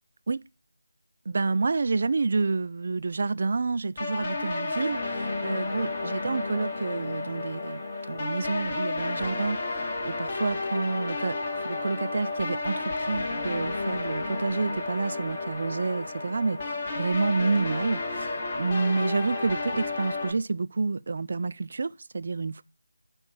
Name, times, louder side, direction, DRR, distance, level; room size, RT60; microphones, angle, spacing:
voice 1, 1.3-7.8 8.1-22.6, right 3 dB, 40° right, 0.4 m, -29 dB
sound 1, 4.0-20.3, left 3 dB, 20° left, 1.1 m, -32 dB
8.2 x 3.3 x 6.2 m
figure-of-eight pair, 160°, 0 cm